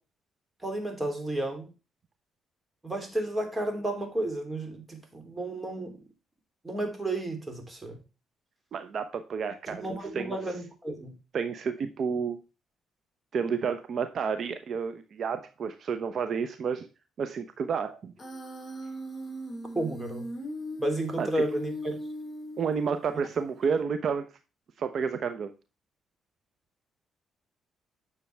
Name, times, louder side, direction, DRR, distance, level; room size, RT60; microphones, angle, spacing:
voice 1, 0.6-1.7 2.8-6.0 6.6-8.0 9.7-11.1 19.7-20.3 20.8-22.0, right 1 dB, 15° right, 3.2 m, -32 dB
voice 2, 8.7-10.3 11.3-12.4 13.3-16.9 17.2-18.1 21.2-21.3 22.6-24.3 24.8-25.5, right 6 dB, 55° right, 0.9 m, -30 dB
Human voice, 18.2-23.2, equal, 20° left, 5.8 m, -38 dB
9.6 x 6.9 x 3.4 m
cardioid pair, 90°, 0 cm